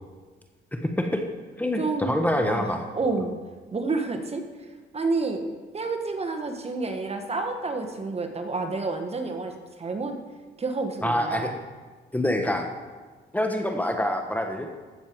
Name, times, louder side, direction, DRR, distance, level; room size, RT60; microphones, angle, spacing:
voice 1, 0.7-1.2 1.6-2.9 11.0-11.5 12.1-12.7 13.3-14.7, left 1 dB, 10° left, 4 dB, 1.1 m, -26 dB
voice 2, 1.8-2.7 2.9-3.3 3.7-4.4 4.9-5.4 5.7-9.5 9.8-10.1 10.6-11.5, right 3 dB, 30° right, 5 dB, 1.4 m, -29 dB
15.0 x 6.7 x 4.7 m, 1.4 s
cardioid pair, 90°, 20 cm